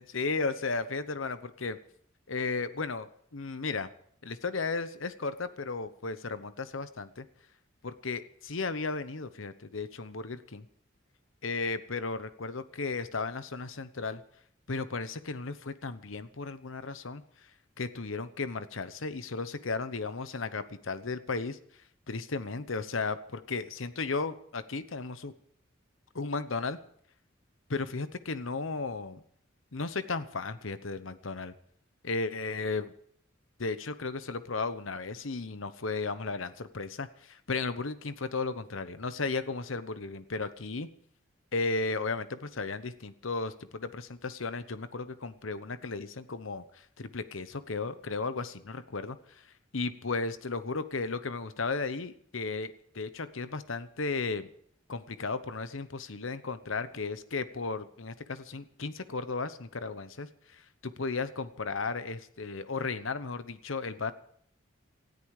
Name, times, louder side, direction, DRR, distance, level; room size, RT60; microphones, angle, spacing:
voice 1, 0.0-1.8 2.3-3.9 4.2-7.3 7.8-10.7 11.4-14.2 14.7-17.2 17.8-21.6 22.1-25.3 26.1-26.8 27.7-29.2 29.7-31.5 32.0-32.9 33.6-40.9 41.5-49.4 49.7-54.5 54.9-64.1, left 4 dB, 75° left, 13 dB, 1.0 m, -35 dB
19.0 x 13.5 x 4.9 m, 0.65 s
head